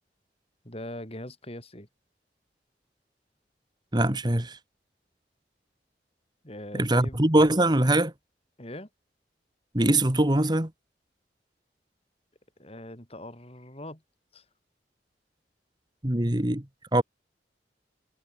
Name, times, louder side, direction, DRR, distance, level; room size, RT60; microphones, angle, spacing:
voice 1, 0.6-1.9 6.4-7.2 8.6-8.9 12.6-14.0 14.3-14.5, left 1 dB, 35° left, 5.4 m, -41 dB
voice 2, 3.9-4.6 6.7-8.1 9.7-10.7 16.0-16.6 16.9-17.0, right 1 dB, 25° right, 1.8 m, -22 dB
head